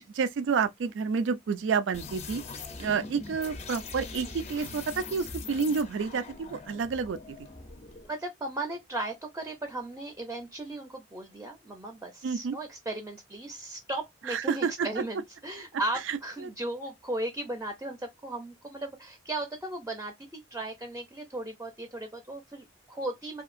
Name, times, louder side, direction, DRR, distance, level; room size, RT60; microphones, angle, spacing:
voice 1, 0.0-2.4 2.8-7.4 12.2-12.6 14.3-15.0 16.1-16.5, right 5 dB, 70° right, 0.4 m, -29 dB
sound 1, 1.9-8.1, left 4 dB, 35° left, 0.5 m, -42 dB
voice 2, 8.1-23.4, right 2 dB, 15° right, 0.5 m, -36 dB
2.7 x 2.4 x 2.5 m
head